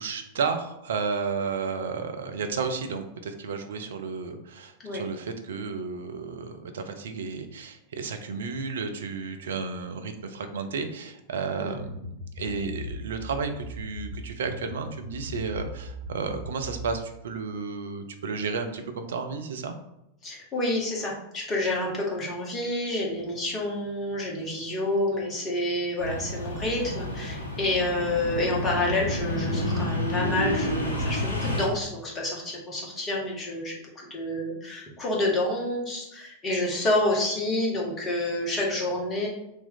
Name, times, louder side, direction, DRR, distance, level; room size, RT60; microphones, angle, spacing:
voice 1, 0.0-19.7, right 5 dB, 60° right, 7 dB, 0.4 m, -32 dB
sound 1, 11.8-17.0, left 1 dB, 60° left, 0.4 m, -39 dB
voice 2, 20.2-39.3, left 1 dB, 25° left, -2 dB, 1.1 m, -28 dB
sound 2, 26.0-31.7, left 1 dB, 80° left, 0.8 m, -30 dB
2.9 x 2.6 x 3.8 m, 0.86 s
figure-of-eight pair, 90°, 0 cm